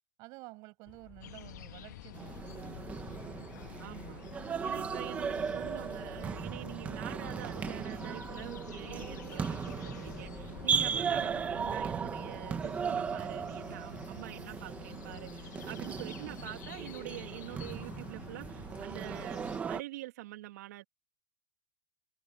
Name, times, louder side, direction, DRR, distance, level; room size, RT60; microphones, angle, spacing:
voice 1, 0.2-2.9, right 24 dB, 40° right, 7.0 m, -51 dB
sound 1, 0.9-12.2, left 8 dB, 20° left, 7.9 m, -54 dB
sound 2, 1.2-19.6, left 11 dB, 85° left, 1.6 m, -49 dB
sound 3, 2.1-19.8, right 6 dB, 15° right, 1.2 m, -37 dB
voice 2, 3.8-4.2 4.6-20.8, right 17 dB, 65° right, 2.8 m, -46 dB
supercardioid pair, 160°, 9 cm